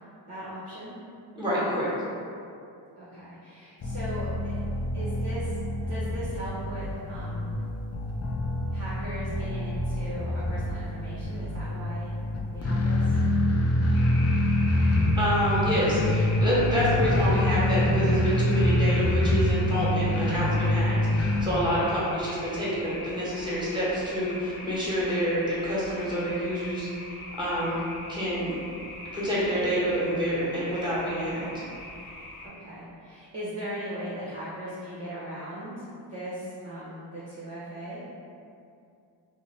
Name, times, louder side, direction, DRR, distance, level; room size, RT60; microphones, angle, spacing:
voice 1, 0.3-0.9 3.0-4.6 4.9-5.6 5.9-7.5 8.7-12.1 12.5-13.1 32.4-38.0, equal, 35° right, -9 dB, 0.7 m, -38 dB
voice 2, 1.3-1.9 15.1-26.9 27.4-27.8 28.1-28.5 29.1-31.5, equal, 10° right, -8 dB, 1.1 m, -27 dB
sound 1, 3.8-21.4, left 1 dB, 35° left, 0.4 m, -26 dB
sound 2, 13.9-32.5, left 2 dB, 80° left, 0.7 m, -42 dB
2.5 x 2.1 x 3.1 m, 2.5 s
cardioid pair, 40°, 48 cm